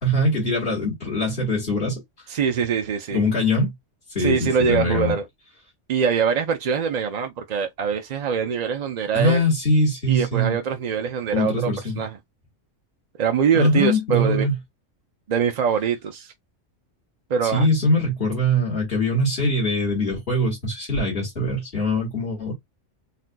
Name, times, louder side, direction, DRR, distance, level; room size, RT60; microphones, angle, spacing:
voice 1, 0.0-2.0 3.1-3.7 4.2-5.1 9.1-10.6 11.3-12.0 13.5-14.6 17.4-22.5, left 1 dB, 50° left, 1.9 m, -22 dB
voice 2, 2.3-3.2 4.2-5.2 5.9-9.4 10.1-11.7 12.0-12.2 13.2-14.5 15.3-16.3 17.3-17.7, right 7 dB, 60° right, 0.4 m, -23 dB
4.1 x 2.5 x 2.2 m
omnidirectional pair, 1.3 m